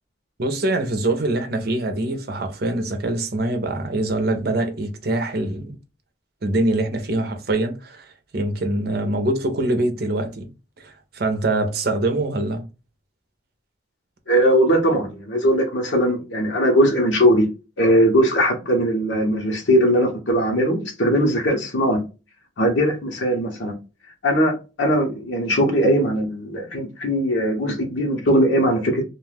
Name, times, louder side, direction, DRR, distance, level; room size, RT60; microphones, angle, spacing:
voice 1, 0.4-5.8 6.4-10.5 10.8-12.7, right 2 dB, 55° right, 0.7 m, -24 dB
voice 2, 14.3-17.5 17.8-22.0 22.6-23.7 24.2-29.0, equal, 90° left, 1.0 m, -19 dB
2.5 x 2.4 x 3.3 m
head